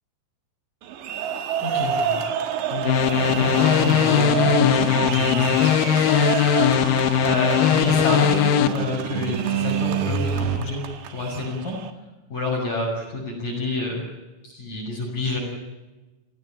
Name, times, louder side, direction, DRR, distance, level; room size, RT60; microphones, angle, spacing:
sound 1, 0.8-11.9, right 8 dB, 70° right, 3.9 m, -30 dB
voice 1, 1.6-2.2 2.7-6.8 7.2-10.8 11.1-11.8 12.3-14.0 14.4-15.4, left 2 dB, 45° left, -4 dB, 8.0 m, -28 dB
sound 2, 2.8-8.7, left 9 dB, 90° left, 2.0 m, -19 dB
sound 3, 3.2-10.6, right 8 dB, 85° right, 1.3 m, -29 dB
29.5 x 17.0 x 9.0 m, 1.1 s
omnidirectional pair, 5.5 m